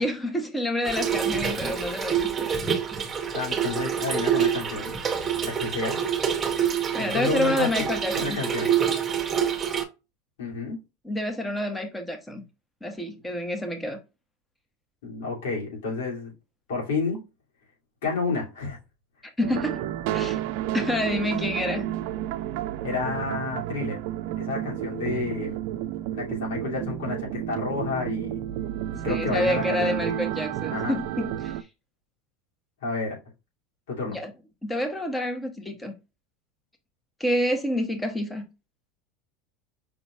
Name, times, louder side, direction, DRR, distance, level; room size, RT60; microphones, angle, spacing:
voice 1, 0.0-2.5 6.9-8.4 11.0-12.4 12.8-14.0 19.4-19.8 20.1-20.4 20.7-21.9 29.1-31.6 34.0-34.3 34.6-35.9 37.2-38.5, left 1 dB, 10° left, 1.3 m, -28 dB
Trickle dribble / Fill (with liquid), 0.8-9.8, right 8 dB, 25° right, 1.1 m, -26 dB
voice 2, 3.3-5.0 5.4-6.0 7.0-7.7 8.1-8.7 10.4-10.8 15.0-16.3 16.7-17.2 18.0-18.8 22.8-24.0 24.4-25.6 26.1-28.4 28.9-30.2 30.7-31.0 32.8-33.2 33.9-34.2, left 4 dB, 80° left, 2.7 m, -30 dB
sound 1, 19.4-31.6, right 12 dB, 65° right, 0.4 m, -31 dB
5.5 x 3.9 x 2.4 m
hypercardioid pair, 100°, 0 cm